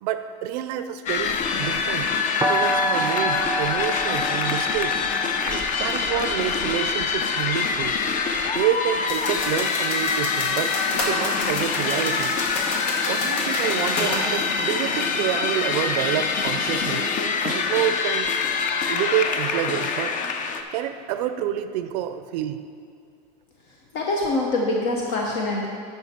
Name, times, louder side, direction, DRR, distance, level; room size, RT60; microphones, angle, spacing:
voice 1, 0.0-2.1 2.4-5.0 5.4-8.0 8.5-12.4 13.1-17.1 17.4-18.3 18.9-20.1 20.7-22.6, right 11 dB, 85° right, 9 dB, 0.5 m, -28 dB
sound 1, 1.1-20.6, left 5 dB, 40° left, 0.6 m, -25 dB
sound 2, 2.4-8.2, right 1 dB, 10° right, 0.5 m, -30 dB
sound 3, 9.1-14.3, left 2 dB, 85° left, 1.8 m, -31 dB
voice 2, 23.9-25.7, left 2 dB, 65° left, -1 dB, 1.1 m, -24 dB
10.0 x 5.8 x 4.4 m, 2.4 s
supercardioid pair, 130°, 20 cm